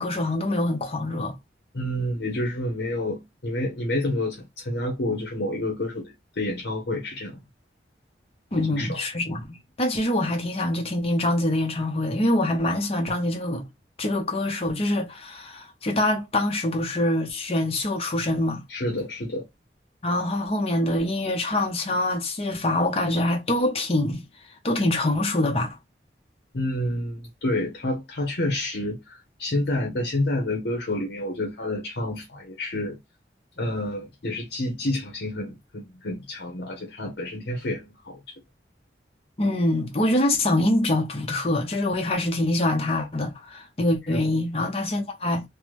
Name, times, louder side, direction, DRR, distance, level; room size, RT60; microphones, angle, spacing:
voice 1, 0.0-1.4 8.5-13.6 14.0-18.6 20.0-24.2 24.6-25.8 29.7-29.9 39.4-45.4, left 1 dB, 35° left, 0.8 m, -25 dB
voice 2, 1.7-7.4 8.6-9.0 18.7-19.4 26.5-33.0 33.6-38.3 44.1-44.4, left 1 dB, 75° left, 0.8 m, -29 dB
3.3 x 2.1 x 3.0 m
head